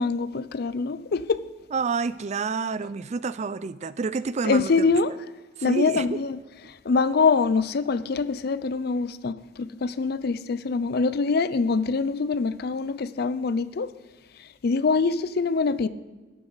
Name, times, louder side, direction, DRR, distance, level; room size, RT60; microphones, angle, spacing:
voice 1, 0.0-1.4 4.4-5.1 5.6-6.4 6.7-13.9 14.6-15.9, left 4 dB, 55° left, 0.5 m, -24 dB
voice 2, 1.7-4.9 5.6-6.2, right 4 dB, 40° right, 0.4 m, -28 dB
12.0 x 11.0 x 4.0 m
head